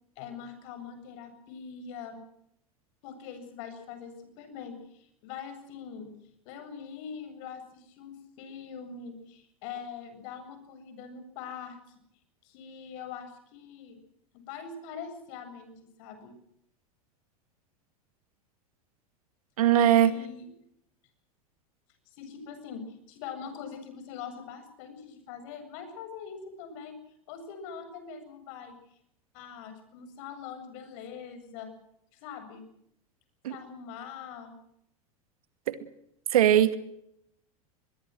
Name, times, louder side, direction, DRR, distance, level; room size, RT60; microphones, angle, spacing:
voice 1, 0.2-2.2 3.0-6.1 6.5-11.8 12.4-14.0 14.3-16.3 20.0-20.5 22.2-26.9 27.3-28.8 29.3-31.7 32.2-32.7 33.5-34.6, left 6 dB, 60° left, 7.6 m, -43 dB
voice 2, 19.6-20.1 33.4-33.6 35.7-35.8 36.3-36.8, right 11 dB, 75° right, 2.1 m, -20 dB
23.0 x 22.5 x 6.2 m
hypercardioid pair, 90°, 19 cm